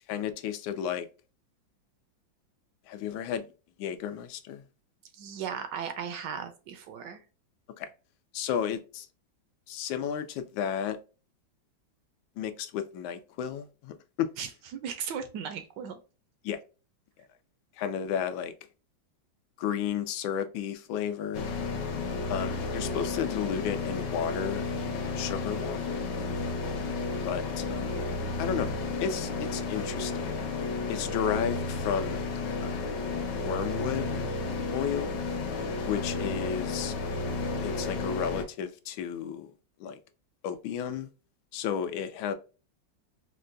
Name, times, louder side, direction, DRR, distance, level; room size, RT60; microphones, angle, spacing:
voice 1, 0.1-1.1 2.9-3.4 3.8-4.6 7.8-7.9 8.3-9.1 9.7-11.0 12.4-14.3 16.4-16.6 17.8-18.5 19.6-21.5 22.3-24.7 24.9-26.0 27.2-27.9 28.4-28.7 29.0-30.1 30.9-32.2 32.6-32.8 33.4-34.2 34.7-35.1 35.8-36.9 37.6-39.5 39.8-40.0 40.4-41.1 41.5-42.3, left 8 dB, 90° left, 1.4 m, -32 dB
voice 2, 5.1-7.2 14.4-16.0, right 7 dB, 75° right, 1.1 m, -37 dB
sound 1, 21.3-38.4, left 3 dB, 70° left, 1.3 m, -32 dB
4.5 x 2.2 x 2.5 m
omnidirectional pair, 2.1 m